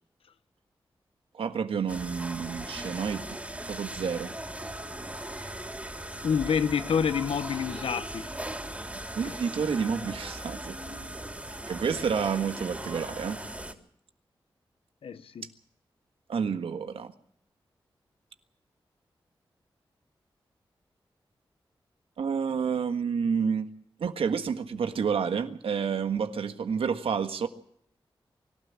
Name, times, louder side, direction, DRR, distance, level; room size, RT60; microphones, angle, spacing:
voice 1, 1.3-3.4 3.7-4.3 9.1-10.8 11.5-13.4 16.3-17.1 22.2-23.7 24.0-27.5, right 6 dB, 85° right, 1.5 m, -29 dB
sound 1, 1.9-13.7, right 1 dB, 15° right, 3.5 m, -39 dB
voice 2, 6.2-8.3 15.0-15.5, left 7 dB, 80° left, 1.0 m, -27 dB
24.5 x 12.5 x 8.7 m
cardioid pair, 40°, 9 cm